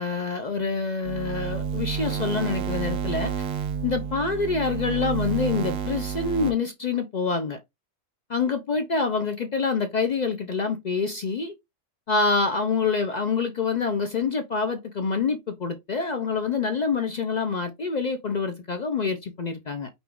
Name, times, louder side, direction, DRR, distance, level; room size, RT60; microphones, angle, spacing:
voice 1, 0.0-3.5 3.8-7.6 8.3-11.5 12.1-19.9, left 4 dB, 55° left, 0.4 m, -26 dB
sound 1, 1.0-6.5, right 7 dB, 60° right, 0.8 m, -30 dB
5.3 x 2.3 x 3.5 m
omnidirectional pair, 1.3 m